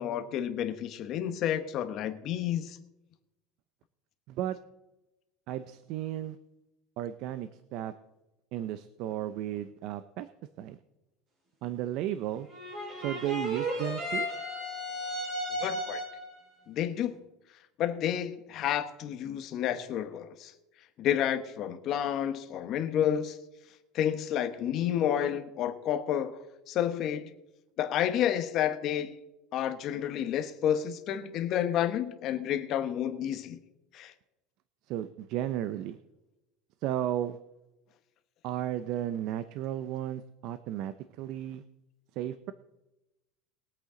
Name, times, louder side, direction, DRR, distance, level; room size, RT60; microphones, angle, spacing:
voice 1, 0.0-2.8 15.6-16.0 16.7-17.2 17.8-20.5 21.0-23.4 23.9-26.4 26.7-27.3 27.8-29.1 29.5-33.6 33.9-34.1, left 10 dB, 40° left, 8 dB, 1.1 m, -30 dB
voice 2, 5.5-6.4 7.0-7.9 8.5-10.3 10.6-10.8 11.6-12.5 13.0-14.3 34.9-36.0 36.8-37.4 38.4-41.6 42.2-42.5, right 12 dB, 55° right, 13 dB, 0.5 m, -34 dB
sound 1, 12.5-16.3, equal, 35° right, 4.3 m, -34 dB
21.0 x 8.2 x 3.8 m, 0.98 s
cardioid pair, 155°, 0 cm